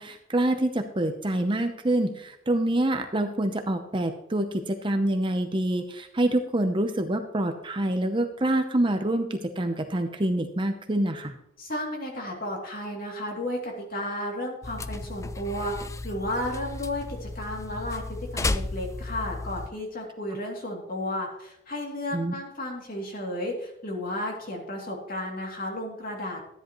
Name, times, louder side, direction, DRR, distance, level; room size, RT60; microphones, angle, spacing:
voice 1, 0.0-11.3 22.1-22.3, right 1 dB, 25° right, 6 dB, 0.7 m, -26 dB
voice 2, 11.6-15.7 16.0-26.5, left 1 dB, 45° left, 0 dB, 2.7 m, -33 dB
sound 1, 14.6-19.7, left 2 dB, 15° left, 0.3 m, -34 dB
13.0 x 10.5 x 3.1 m, 0.76 s
head